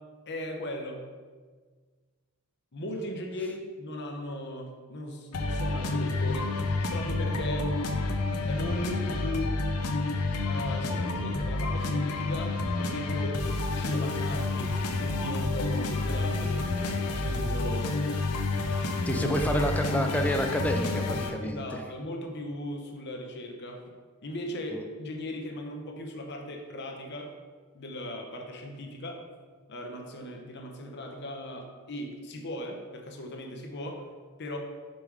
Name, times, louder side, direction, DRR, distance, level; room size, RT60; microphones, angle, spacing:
voice 1, 0.3-1.0 2.7-6.5 6.9-7.7 8.5-9.6 10.5-17.9 19.1-19.3 21.4-23.8 24.2-27.3 27.7-29.2 29.7-34.1 34.4-34.6, left 1 dB, 50° left, 2 dB, 0.9 m, -38 dB
sound 1, 5.3-21.3, left 2 dB, 85° left, 0.7 m, -29 dB
voice 2, 19.1-21.8, equal, 5° left, 4 dB, 0.5 m, -28 dB
5.4 x 5.0 x 4.7 m, 1.5 s
head